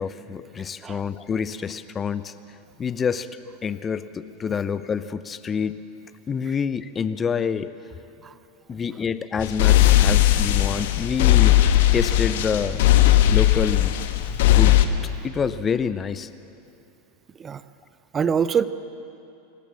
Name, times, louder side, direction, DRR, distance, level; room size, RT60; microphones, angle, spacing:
voice 1, 0.0-2.3 2.8-3.3 3.6-5.8 6.3-7.7 8.7-11.6 11.9-12.8 13.3-13.9 14.5-14.8 15.2-16.3, left 6 dB, 25° left, 14 dB, 0.7 m, -27 dB
sound 1, 9.4-14.8, left 13 dB, 60° left, 1.1 m, -18 dB
voice 2, 18.1-18.6, right 7 dB, 25° right, 14 dB, 0.7 m, -24 dB
26.0 x 13.5 x 7.4 m, 2.8 s
figure-of-eight pair, 85°, 0 cm